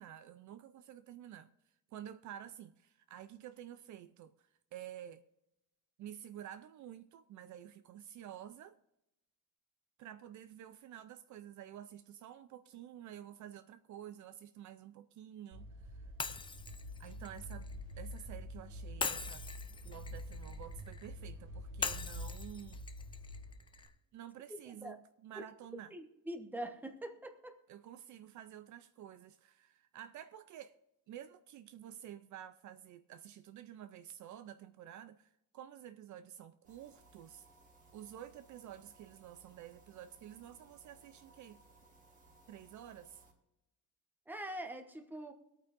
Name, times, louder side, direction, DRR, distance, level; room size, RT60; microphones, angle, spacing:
voice 1, 0.0-5.2 6.0-8.8 10.0-16.1 17.0-17.7 18.0-19.5 19.8-22.8 24.1-26.0 27.7-30.8 31.1-37.5 37.9-41.6 42.5-43.2, right 10 dB, 55° right, 0.5 m, -51 dB
sound 1, 15.5-23.9, equal, 80° right, 3.5 m, -47 dB
Shatter, 16.2-18.3 19.0-21.1 21.8-23.9, left 5 dB, 15° left, 0.3 m, -42 dB
voice 2, 24.7-25.0 25.4-25.5 25.9-27.6 44.3-45.3, right 1 dB, 5° right, 1.0 m, -44 dB
sound 2, 36.6-43.3, right 3 dB, 20° right, 2.0 m, -64 dB
23.5 x 9.0 x 2.6 m
cardioid pair, 170°, 35 cm